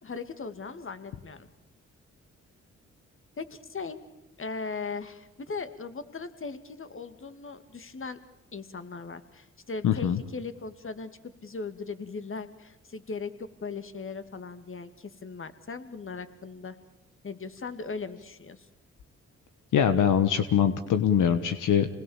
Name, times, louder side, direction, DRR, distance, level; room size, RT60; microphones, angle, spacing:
voice 1, 0.0-1.5 3.4-4.0 4.4-8.2 8.5-16.8 17.2-18.7, left 4 dB, 40° left, 10 dB, 2.3 m, -38 dB
voice 2, 9.8-10.2 19.7-21.9, left 8 dB, 75° left, 9 dB, 1.3 m, -23 dB
27.0 x 20.0 x 7.3 m, 0.92 s
supercardioid pair, 55°, 31 cm